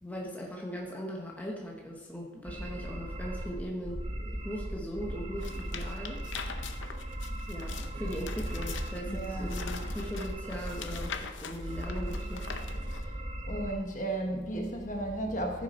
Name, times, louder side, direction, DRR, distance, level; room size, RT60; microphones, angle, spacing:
voice 1, 0.0-4.0 4.4-6.2 7.5-12.5, equal, 10° left, -1 dB, 1.0 m, -39 dB
sound 1, 2.4-13.8, right 1 dB, 30° right, 0.8 m, -37 dB
sound 2, 5.4-13.0, left 6 dB, 90° left, 0.7 m, -43 dB
voice 2, 9.0-9.5 13.0-15.6, right 1 dB, 40° left, 2 dB, 1.2 m, -34 dB
14.5 x 6.1 x 4.2 m, 1.2 s
head